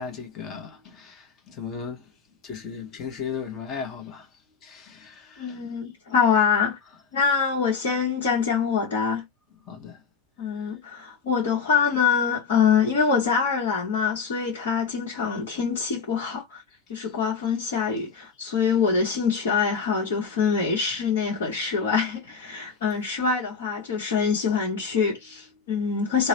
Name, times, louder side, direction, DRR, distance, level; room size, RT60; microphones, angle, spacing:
voice 1, 0.0-2.1 2.4-4.3 4.6-5.7 9.7-10.0, left 6 dB, 30° left, 0.9 m, -36 dB
voice 2, 5.4-6.8 7.1-9.2 10.4-16.6 16.9-26.3, left 6 dB, 55° left, 1.1 m, -24 dB
2.9 x 2.1 x 2.8 m
figure-of-eight pair, 90°, 0 cm